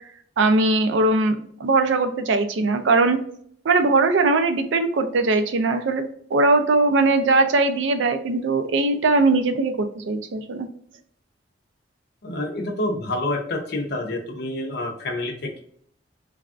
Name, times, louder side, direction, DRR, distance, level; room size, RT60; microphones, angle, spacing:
voice 1, 0.4-3.2 3.6-10.7, right 3 dB, 75° right, 8 dB, 0.4 m, -20 dB
voice 2, 12.2-15.6, left 1 dB, 60° left, 2 dB, 0.7 m, -28 dB
3.3 x 2.4 x 2.4 m, 0.62 s
head